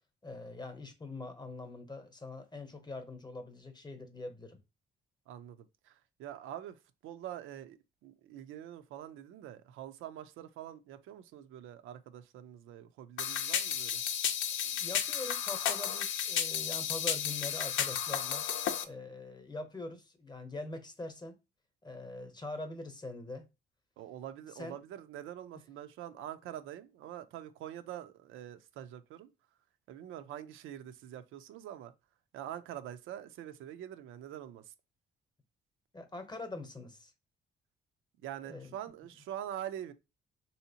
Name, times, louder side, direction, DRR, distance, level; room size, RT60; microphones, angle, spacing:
voice 1, 0.2-4.6 14.6-18.5 18.8-21.4 21.8-23.5 24.5-24.8 35.9-37.1 38.4-38.7, left 2 dB, 20° left, 0.8 m, -43 dB
voice 2, 5.3-6.8 7.0-14.0 24.0-29.3 29.9-31.9 32.3-34.7 38.2-39.9, right 11 dB, 90° right, 0.5 m, -45 dB
sound 1, 13.2-18.8, left 9 dB, 75° left, 0.6 m, -33 dB
3.4 x 2.8 x 2.8 m
cardioid pair, 90°, 20 cm